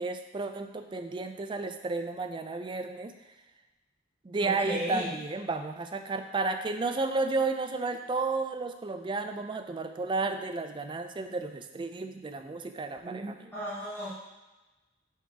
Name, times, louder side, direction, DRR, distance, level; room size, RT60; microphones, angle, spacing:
voice 1, 0.0-3.1 4.2-13.5, right 3 dB, 25° right, 7 dB, 0.3 m, -32 dB
voice 2, 4.4-5.1 13.5-14.1, equal, 10° left, -11 dB, 1.3 m, -34 dB
4.7 x 4.3 x 4.6 m, 1.1 s
head